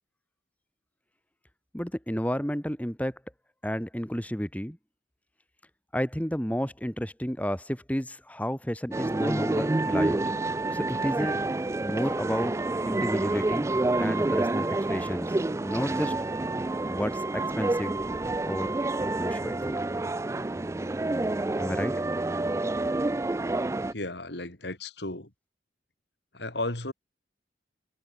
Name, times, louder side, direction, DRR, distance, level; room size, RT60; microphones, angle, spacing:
voice 1, 1.7-3.2 3.6-4.8 5.9-10.2 10.7-11.4 11.8-12.5 12.8-13.7 14.0-16.1 16.8-18.0 18.5-19.7 21.6-22.0, equal, 10° left, 2.3 m, -31 dB
sound 1, 8.9-23.9, right 2 dB, 15° right, 0.3 m, -28 dB
voice 2, 23.9-25.3 26.3-26.9, left 2 dB, 70° left, 4.0 m, -34 dB
head